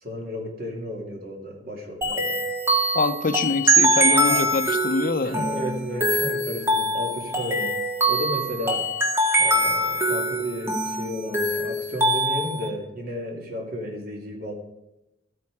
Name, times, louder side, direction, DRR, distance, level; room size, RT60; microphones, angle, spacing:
voice 1, 0.0-2.4 4.1-4.5 5.2-7.7 8.1-8.8 9.4-14.5, equal, 55° right, 1 dB, 2.7 m, -33 dB
sound 1, 2.0-12.7, right 1 dB, 15° right, 1.9 m, -23 dB
voice 2, 2.9-5.3, left 3 dB, 50° left, 13 dB, 0.5 m, -24 dB
13.5 x 9.0 x 4.8 m, 0.90 s
head